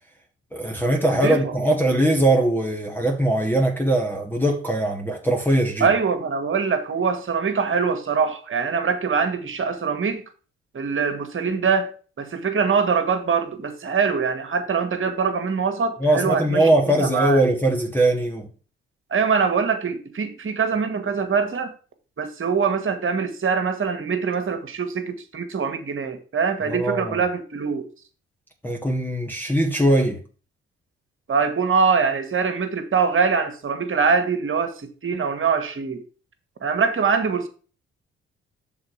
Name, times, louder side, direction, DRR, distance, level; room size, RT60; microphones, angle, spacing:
voice 1, 0.5-5.9 16.0-18.5 26.6-27.2 28.6-30.2, right 1 dB, 5° left, 1.5 m, -21 dB
voice 2, 1.0-1.5 5.8-10.2 10.7-17.4 19.1-21.7 22.2-27.9 31.3-36.0 36.6-37.5, right 5 dB, 45° right, 1.5 m, -23 dB
6.4 x 4.0 x 6.3 m
hypercardioid pair, 45°, 30 cm